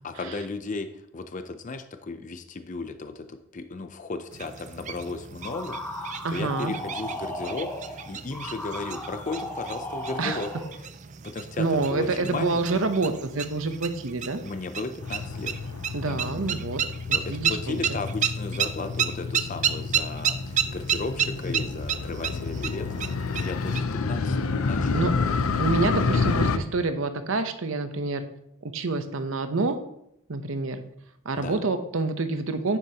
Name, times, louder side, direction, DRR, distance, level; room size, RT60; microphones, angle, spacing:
voice 1, 0.0-10.5 11.2-12.8 14.4-15.6 16.0-16.2 17.1-25.3 31.4-31.6, left 3 dB, 35° left, 9 dB, 0.5 m, -35 dB
sound 1, 4.3-23.8, right 8 dB, 35° right, 0.4 m, -32 dB
sound 2, 5.4-10.8, left 1 dB, 10° left, 0.8 m, -36 dB
voice 2, 6.2-6.7 10.2-10.4 11.6-14.4 15.9-16.8 17.3-18.0 24.9-25.1 25.6-28.2 28.6-29.8 30.3-30.8 31.2-32.8, right 3 dB, 70° right, 9 dB, 0.7 m, -27 dB
Motorcycle, 15.0-26.6, left 4 dB, 85° left, 0.5 m, -29 dB
9.9 x 7.1 x 2.9 m, 0.76 s
head